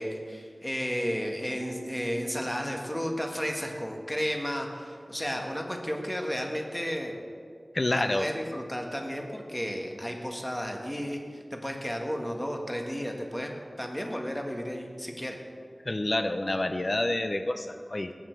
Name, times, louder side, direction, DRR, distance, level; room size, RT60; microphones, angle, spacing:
voice 1, 0.0-7.2 7.9-11.2 11.5-13.5 13.8-15.4, equal, 10° left, 2 dB, 1.6 m, -33 dB
sound 1, 1.6-4.0, right 2 dB, 85° right, 1.0 m, -46 dB
voice 2, 7.7-8.3 15.9-18.2, left 1 dB, 45° left, 8 dB, 0.6 m, -28 dB
19.0 x 8.8 x 4.6 m, 2.1 s
wide cardioid pair, 60°, 0 cm